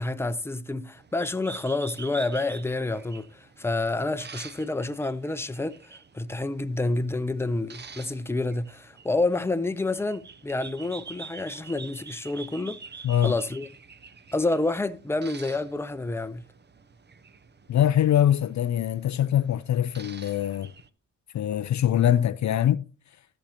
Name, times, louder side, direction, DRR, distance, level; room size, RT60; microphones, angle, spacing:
voice 1, 0.0-12.8 13.2-13.7 14.3-16.4, left 2 dB, 5° left, 0.7 m, -28 dB
sound 1, 1.0-20.9, right 5 dB, 30° right, 0.8 m, -47 dB
voice 2, 17.7-20.7 21.3-22.9, left 11 dB, 55° left, 0.5 m, -23 dB
14.5 x 6.3 x 2.9 m
cardioid pair, 60°, 35 cm